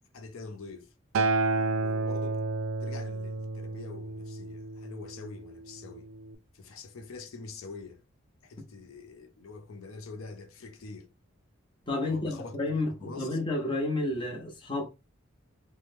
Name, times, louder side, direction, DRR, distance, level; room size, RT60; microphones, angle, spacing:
voice 1, 0.1-0.9 1.8-2.4 2.8-6.1 6.5-8.0 8.4-11.1 12.1-13.4, left 3 dB, 85° left, 0.5 m, -45 dB
Acoustic guitar, 1.1-5.4 6.3-6.4, right 3 dB, 70° right, 0.4 m, -30 dB
voice 2, 11.9-14.8, left 2 dB, 25° left, 0.7 m, -31 dB
3.0 x 2.1 x 3.3 m
head